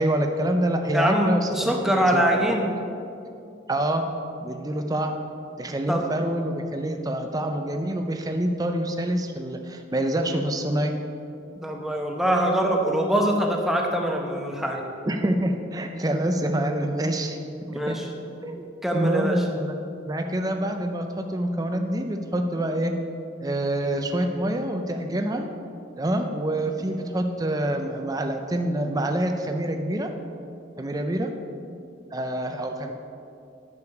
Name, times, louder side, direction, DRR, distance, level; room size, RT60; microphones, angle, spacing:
voice 1, 0.0-2.0 2.3-2.5 3.7-4.0 4.4-5.1 5.6-10.9 15.1-17.4 17.7-18.0 18.4-18.6 18.9-19.7 20.0-22.9 23.4-25.5 26.0-30.1 30.8-31.3 32.1-32.9, right 1 dB, 20° right, 4 dB, 0.5 m, -26 dB
voice 2, 0.9-2.7 5.9-6.0 11.6-14.8 17.7-18.1 18.8-19.4, right 1 dB, ahead, 0 dB, 0.9 m, -23 dB
9.7 x 6.9 x 4.7 m, 2.6 s
head